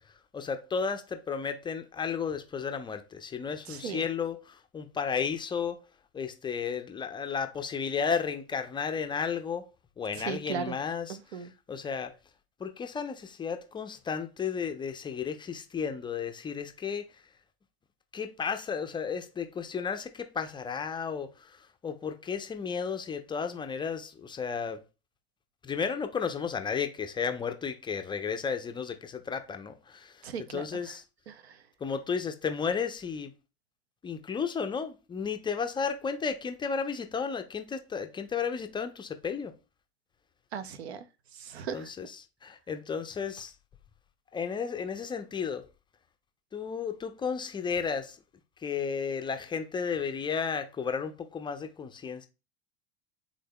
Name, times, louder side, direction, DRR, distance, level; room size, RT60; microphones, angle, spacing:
voice 1, 0.3-5.8 6.1-9.7 10.0-12.1 12.6-17.1 18.1-24.8 25.6-31.0 31.8-33.3 34.0-39.5 41.7-43.5 44.3-45.6 46.5-48.2 48.6-52.3, left 6 dB, 15° left, 0.4 m, -33 dB
voice 2, 3.7-4.0 10.3-10.8 11.1-11.5 30.2-30.6 31.3-31.6 40.5-41.0 41.4-41.9, right 6 dB, 80° right, 0.5 m, -37 dB
3.6 x 3.3 x 2.2 m
hypercardioid pair, 85°, 32 cm